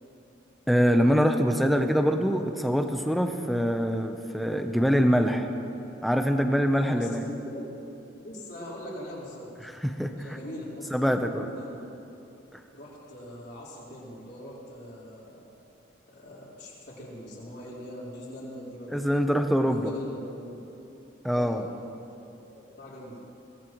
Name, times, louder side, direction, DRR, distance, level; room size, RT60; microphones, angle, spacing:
voice 1, 0.7-5.5 6.0-7.2 9.6-10.1 10.9-11.4 12.5-12.6 18.9-19.9 21.2-21.6, equal, ahead, 5 dB, 0.7 m, -24 dB
voice 2, 6.7-7.7 8.2-9.5 10.2-11.8 12.7-15.4 16.1-19.1 19.7-20.5 21.3-21.6 22.5-23.2, equal, 50° left, -7 dB, 4.4 m, -41 dB
23.0 x 19.0 x 3.1 m, 2.8 s
head